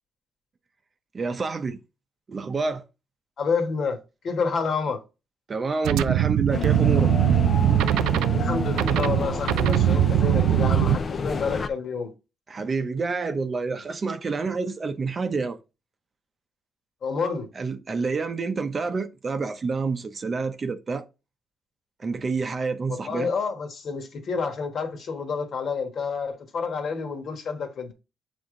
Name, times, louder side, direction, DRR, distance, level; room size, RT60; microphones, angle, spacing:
voice 1, 1.1-1.8 2.3-2.8 5.5-7.1 12.5-15.6 17.6-21.1 22.0-23.3, right 4 dB, 35° right, 0.7 m, -28 dB
voice 2, 3.4-4.0 4.2-5.0 8.3-12.1 17.0-17.5 23.0-27.9, left 5 dB, 60° left, 1.5 m, -29 dB
sound 1, 5.8-11.0, right 12 dB, 90° right, 0.3 m, -21 dB
sound 2, 6.5-11.7, left 5 dB, 40° left, 0.6 m, -30 dB
7.2 x 3.6 x 3.8 m
cardioid pair, 90°, 0 cm